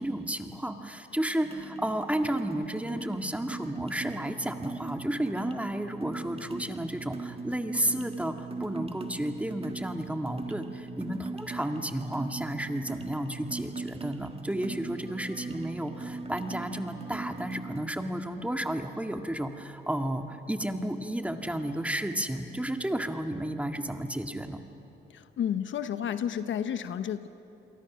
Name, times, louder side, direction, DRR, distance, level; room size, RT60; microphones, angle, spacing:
voice 1, 0.0-24.6, right 1 dB, 5° right, 5 dB, 1.8 m, -32 dB
sound 1, 1.4-17.8, right 3 dB, 30° right, 1.6 m, -40 dB
voice 2, 25.1-27.3, left 9 dB, 70° left, 11 dB, 0.9 m, -31 dB
29.0 x 23.0 x 6.2 m, 3.0 s
cardioid pair, 70°, 20 cm